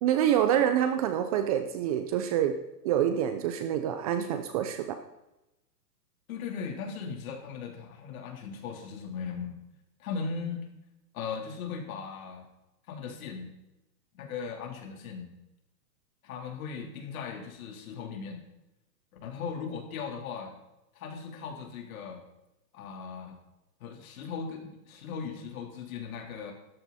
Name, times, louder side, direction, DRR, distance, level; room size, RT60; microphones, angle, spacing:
voice 1, 0.0-2.6 2.8-5.0, right 10 dB, 25° right, 8 dB, 0.5 m, -26 dB
voice 2, 6.3-9.5 10.0-10.6 11.1-12.5 12.9-13.5 14.1-15.3 16.2-18.4 19.2-20.5 20.9-22.2 22.7-23.4 23.8-26.5, left 5 dB, 55° left, 2 dB, 3.9 m, -38 dB
14.5 x 13.5 x 4.3 m, 0.92 s
hypercardioid pair, 145°, 48 cm